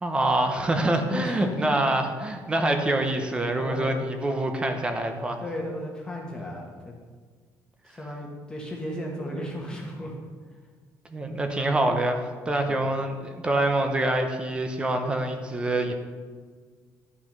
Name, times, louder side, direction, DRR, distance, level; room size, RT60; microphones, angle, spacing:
voice 1, 0.0-5.4 11.1-15.9, right 1 dB, 15° right, 5 dB, 0.8 m, -25 dB
voice 2, 1.1-1.5 3.6-3.9 5.4-6.9 7.9-10.1 12.7-12.8, left 1 dB, 10° left, -2 dB, 1.4 m, -34 dB
11.5 x 6.1 x 5.3 m, 1.5 s
cardioid pair, 175°, 7 cm